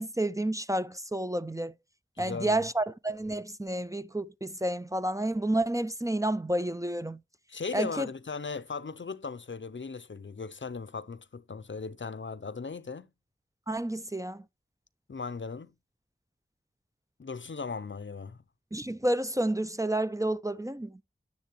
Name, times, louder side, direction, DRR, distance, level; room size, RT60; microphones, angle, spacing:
voice 1, 0.0-1.7 2.2-7.2 7.7-8.1 13.7-14.4 18.7-20.9, right 1 dB, 15° right, 0.4 m, -30 dB
voice 2, 2.2-2.6 7.5-13.1 15.1-15.7 17.2-18.4, left 4 dB, 65° left, 0.6 m, -37 dB
10.5 x 7.2 x 3.1 m
wide cardioid pair, 40°, 21 cm